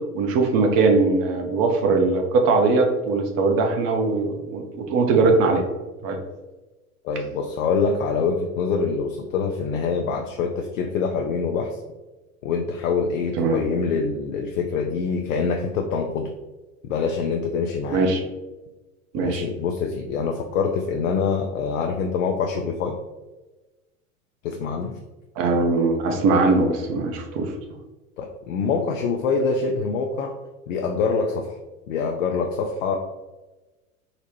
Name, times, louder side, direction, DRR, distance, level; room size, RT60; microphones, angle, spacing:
voice 1, 0.1-5.6 6.0-6.2 13.4-13.6 17.9-18.2 19.1-19.4 25.4-27.5, right 3 dB, 35° right, 3 dB, 0.6 m, -20 dB
voice 2, 7.0-11.8 12.4-16.3 16.8-18.1 19.2-23.0 24.4-25.0 28.2-30.4 30.7-31.5 31.9-33.0, left 5 dB, 65° left, 3 dB, 0.5 m, -25 dB
3.9 x 2.1 x 2.9 m, 1.1 s
figure-of-eight pair, 85°, 43 cm